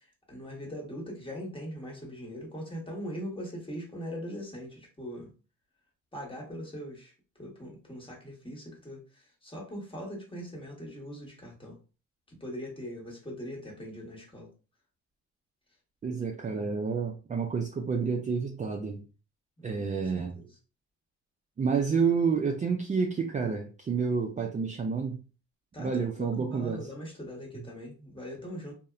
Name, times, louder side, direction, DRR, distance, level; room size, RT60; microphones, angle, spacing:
voice 1, 0.3-5.3 6.1-7.1 7.4-9.0 9.4-11.7 12.4-14.5 19.6-19.8 20.1-20.2 25.7-28.7, equal, 15° left, 1.1 m, -40 dB
voice 2, 16.0-19.0 19.6-20.4 21.6-25.2 25.8-26.9 27.5-27.6, right 5 dB, 25° right, 0.4 m, -29 dB
2.7 x 2.1 x 2.4 m
cardioid pair, 90°, 30 cm